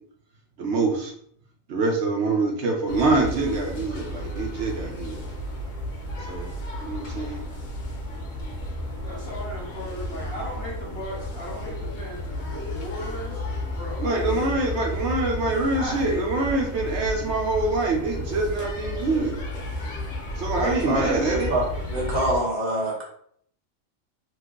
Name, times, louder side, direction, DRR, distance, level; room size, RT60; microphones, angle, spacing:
voice 1, 0.6-1.1 1.7-5.2 6.3-6.5 6.8-7.4 14.0-19.3 20.4-21.5, right 3 dB, 70° right, 1 dB, 0.9 m, -25 dB
sound 1, 2.9-22.4, left 1 dB, 85° left, 1.2 m, -33 dB
voice 2, 9.0-14.9 15.7-16.7, equal, 55° left, -3 dB, 1.0 m, -37 dB
voice 3, 20.6-23.0, right 1 dB, 40° right, -5 dB, 0.9 m, -26 dB
3.2 x 2.0 x 3.5 m, 0.63 s
omnidirectional pair, 1.3 m